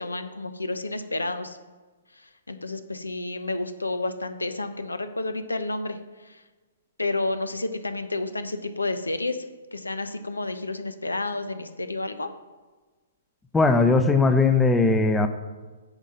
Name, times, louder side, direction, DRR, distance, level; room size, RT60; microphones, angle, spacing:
voice 1, 0.0-1.6 2.1-6.4 7.0-12.3, left 2 dB, 85° left, 10 dB, 0.8 m, -30 dB
voice 2, 13.5-15.3, left 3 dB, 10° left, 8 dB, 0.7 m, -19 dB
9.7 x 5.0 x 5.6 m, 1.3 s
figure-of-eight pair, 120°, 0 cm